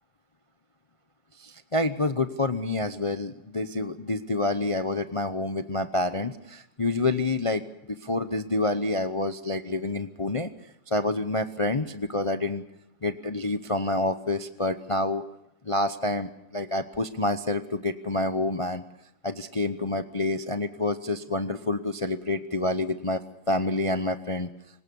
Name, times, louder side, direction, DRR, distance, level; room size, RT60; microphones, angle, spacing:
voice 1, 1.4-10.5 10.9-12.6 13.0-15.2 15.6-18.8 19.2-23.2 23.5-24.5, left 2 dB, 35° left, 9 dB, 0.5 m, -28 dB
24.0 x 19.5 x 7.0 m, 0.78 s
omnidirectional pair, 2.0 m